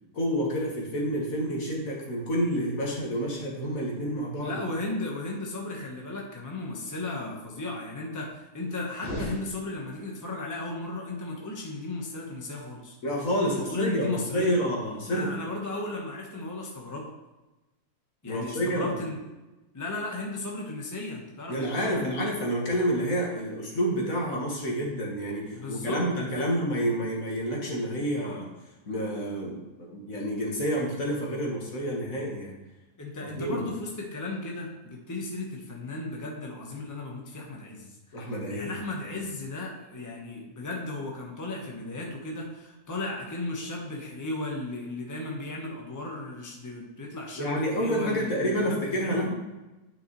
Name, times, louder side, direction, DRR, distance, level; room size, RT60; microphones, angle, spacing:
voice 1, 0.1-4.6 13.0-15.3 18.3-19.0 21.5-28.5 28.9-32.6 33.2-33.6 38.1-38.7 47.4-49.3, equal, 70° left, -2 dB, 2.0 m, -29 dB
voice 2, 4.4-13.0 13.4-14.6 15.1-17.1 18.2-19.2 19.7-22.0 25.5-26.5 33.0-38.0 38.5-49.3, left 2 dB, 15° left, -1 dB, 1.2 m, -35 dB
sound 1, 9.0-10.2, equal, 50° left, 3.0 m, -37 dB
9.7 x 5.9 x 3.2 m, 1.1 s
omnidirectional pair, 1.5 m